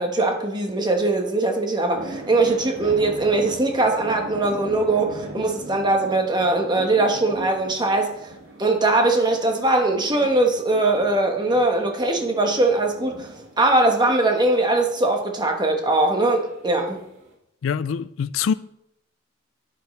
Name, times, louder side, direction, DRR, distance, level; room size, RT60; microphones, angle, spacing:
voice 1, 0.0-8.1 8.6-13.3 13.6-17.0, right 2 dB, 25° right, 1.3 m, -21 dB
sound 1, 1.0-17.3, right 1 dB, 75° right, 2.1 m, -40 dB
voice 2, 17.6-18.5, left 7 dB, 85° left, 0.4 m, -24 dB
9.0 x 8.8 x 3.3 m
head